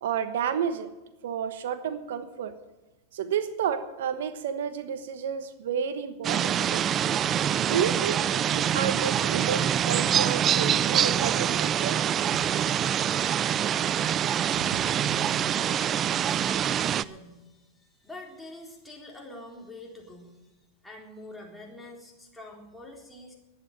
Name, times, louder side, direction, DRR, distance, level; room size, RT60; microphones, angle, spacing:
voice 1, 0.0-0.9 1.2-2.5 3.1-6.8 7.5-12.0 12.3-12.4 14.5-14.9, right 8 dB, 80° right, 11 dB, 1.2 m, -31 dB
sound 1, 6.2-17.0, right 9 dB, 30° right, 0.4 m, -25 dB
voice 2, 14.2-20.5 20.8-23.4, left 2 dB, 5° left, -1 dB, 3.8 m, -46 dB
11.5 x 9.6 x 8.9 m, 1.1 s
hypercardioid pair, 120°, 0 cm